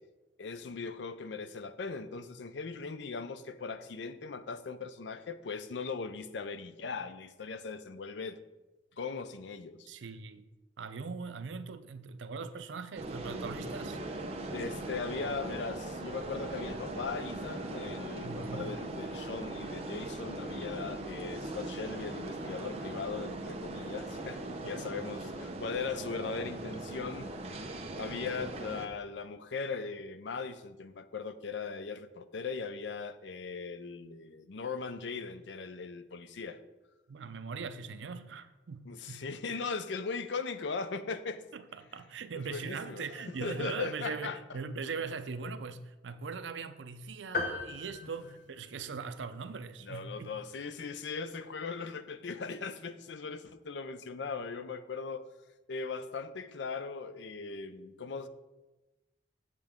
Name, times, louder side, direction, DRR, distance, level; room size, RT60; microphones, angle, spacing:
voice 1, 0.4-8.4 9.0-9.9 14.5-36.6 38.9-41.4 42.3-43.1 43.4-44.4 48.0-48.1 49.8-55.3 55.7-58.3, left 4 dB, 75° left, 0.5 m, -39 dB
voice 2, 9.9-10.5 10.8-14.0 18.2-18.7 24.6-24.8 26.7-26.8 37.1-39.3 41.5-50.4, right 5 dB, 90° right, 0.5 m, -40 dB
sound 1, 13.0-28.9, right 2 dB, 35° right, 0.8 m, -40 dB
sound 2, 47.3-49.1, left 3 dB, 50° left, 1.1 m, -37 dB
7.7 x 7.4 x 3.6 m
head